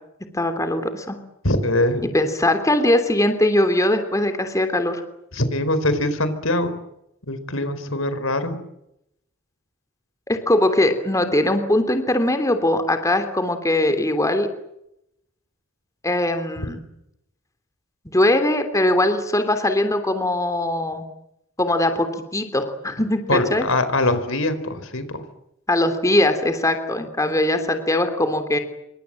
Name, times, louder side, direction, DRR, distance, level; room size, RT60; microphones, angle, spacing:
voice 1, 0.3-1.2 2.1-5.0 10.3-14.5 16.0-16.8 18.0-21.0 21.6-23.6 25.7-28.6, left 1 dB, 15° left, 8 dB, 3.2 m, -21 dB
voice 2, 1.4-2.0 5.3-6.8 7.3-8.6 23.3-25.2, left 1 dB, 80° left, 12 dB, 4.5 m, -22 dB
28.0 x 25.0 x 7.8 m, 0.82 s
head